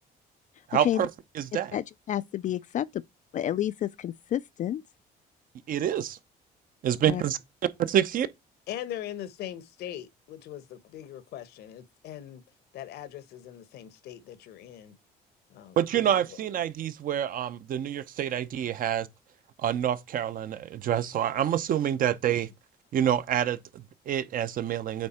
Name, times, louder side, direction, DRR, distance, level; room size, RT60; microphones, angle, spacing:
voice 1, 0.7-1.1 1.4-1.7 5.7-6.2 6.8-7.4 7.8-8.3 15.8-19.1 19.6-22.5 22.9-25.1, right 10 dB, 55° right, 0.8 m, -27 dB
voice 2, 1.7-2.8 3.3-4.8 7.1-7.2, left 11 dB, 45° left, 0.4 m, -30 dB
voice 3, 8.7-12.4 12.7-14.9 15.5-16.0, left 11 dB, 75° left, 1.1 m, -41 dB
8.6 x 3.5 x 4.3 m
cardioid pair, 110°, 17 cm